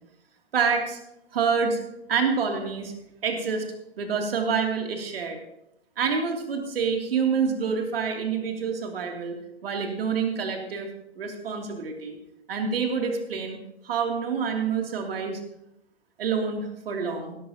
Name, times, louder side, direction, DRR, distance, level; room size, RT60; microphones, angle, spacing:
voice 1, 0.5-1.0 1.3-1.8 2.1-2.9 3.2-3.6 4.0-5.4 6.0-10.9 11.2-12.2 12.5-13.6 13.8-15.4 16.2-17.3, right 6 dB, 60° right, 2 dB, 2.8 m, -27 dB
17.0 x 13.0 x 2.8 m, 0.83 s
figure-of-eight pair, 110°, 33 cm